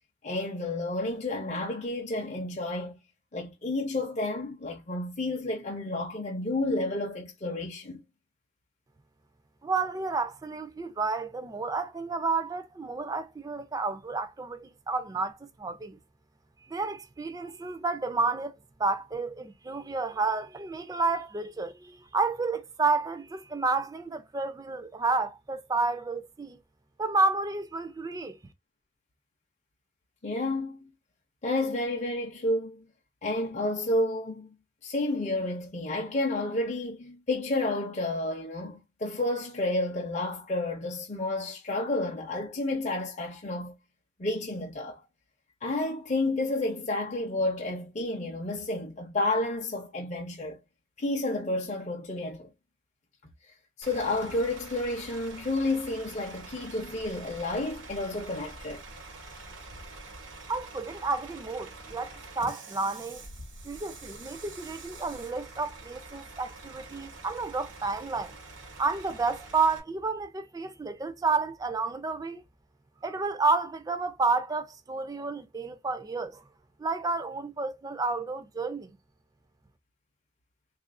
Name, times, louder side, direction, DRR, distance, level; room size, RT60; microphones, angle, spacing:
voice 1, 0.2-3.0 3.3-8.0 30.2-30.9 31.4-32.9 33.2-34.5 34.8-43.7 44.2-45.0 45.6-50.6 51.0-52.5 53.8-58.8, left 2 dB, 40° left, 0.5 m, -30 dB
voice 2, 9.6-16.0 16.7-26.6 27.0-28.4 60.5-63.2 63.6-68.4 68.8-72.4 73.0-76.4 76.8-78.9, right 3 dB, 20° right, 0.4 m, -30 dB
Bus / Idling, 53.8-69.8, right 3 dB, 85° right, 1.0 m, -46 dB
3.5 x 2.4 x 2.4 m
head